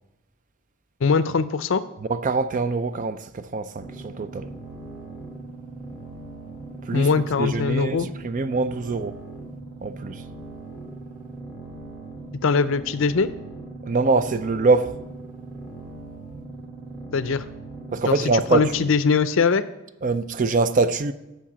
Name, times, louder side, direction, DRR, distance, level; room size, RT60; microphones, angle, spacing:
voice 1, 1.0-1.8 6.9-8.1 12.4-13.3 17.1-17.4 18.1-19.6, left 5 dB, 60° left, 0.5 m, -21 dB
voice 2, 2.1-4.5 6.9-7.1 7.4-9.2 9.8-10.2 13.9-15.0 17.9-18.7 20.0-21.1, right 3 dB, 40° right, 0.4 m, -23 dB
sound 1, 3.8-18.8, right 2 dB, 5° right, 2.0 m, -39 dB
7.3 x 5.8 x 7.2 m
head